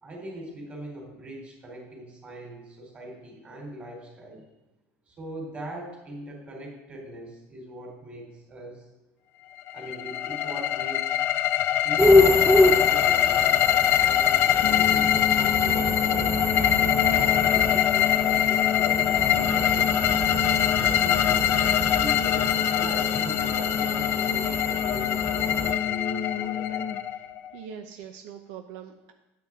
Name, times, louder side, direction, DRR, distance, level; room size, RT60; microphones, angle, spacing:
voice 1, 0.0-4.4 5.1-8.8 9.7-11.2 11.7-13.5 14.0-16.3 17.1-20.1 20.6-21.5 22.0-26.9, right 1 dB, 25° right, -1 dB, 3.2 m, -40 dB
sound 1, 9.7-27.5, left 12 dB, 45° left, 0.4 m, -24 dB
sound 2, 12.0-25.7, left 1 dB, 5° right, 0.6 m, -27 dB
sound 3, 14.6-27.0, left 8 dB, 70° left, 0.8 m, -31 dB
voice 2, 27.5-29.1, right 8 dB, 80° right, 5 dB, 0.6 m, -42 dB
8.8 x 8.6 x 3.6 m, 1.0 s
cardioid pair, 145°, 6 cm